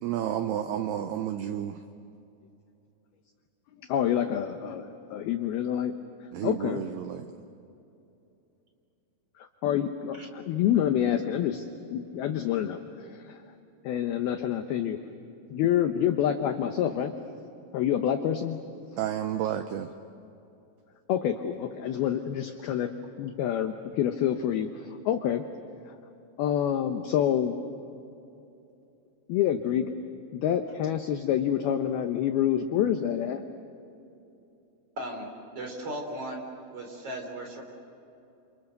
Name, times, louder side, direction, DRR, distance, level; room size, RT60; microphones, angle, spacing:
voice 1, 0.0-1.8 6.3-7.3 19.0-19.9, right 10 dB, 80° right, 8 dB, 2.3 m, -31 dB
voice 2, 3.9-5.9 6.4-6.8 9.4-11.7 11.9-13.4 13.8-15.0 15.5-17.1 17.7-18.6 21.1-22.9 23.2-25.4 25.9-26.0 26.4-27.5 29.3-29.9 30.3-33.4, left 10 dB, 80° left, 6 dB, 2.2 m, -27 dB
voice 3, 35.0-36.5 36.7-37.6, right 1 dB, 30° right, 2 dB, 4.1 m, -37 dB
29.0 x 28.0 x 6.6 m, 2.7 s
omnidirectional pair, 5.7 m